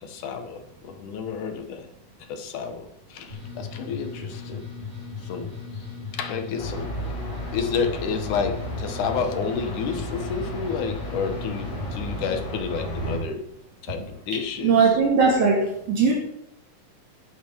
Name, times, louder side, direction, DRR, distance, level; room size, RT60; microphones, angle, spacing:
voice 1, 0.0-1.9 2.3-4.7 5.2-5.9 6.1-6.9 7.5-13.5 13.8-14.9, left 6 dB, 75° left, 6 dB, 2.7 m, -30 dB
sound 1, 3.3-12.4, left 5 dB, 15° right, 4.4 m, -37 dB
sound 2, 6.6-13.2, equal, 40° left, 6.5 m, -34 dB
voice 2, 14.6-16.1, right 5 dB, 70° right, -2 dB, 3.6 m, -19 dB
13.5 x 10.5 x 4.6 m, 0.80 s
omnidirectional pair, 3.6 m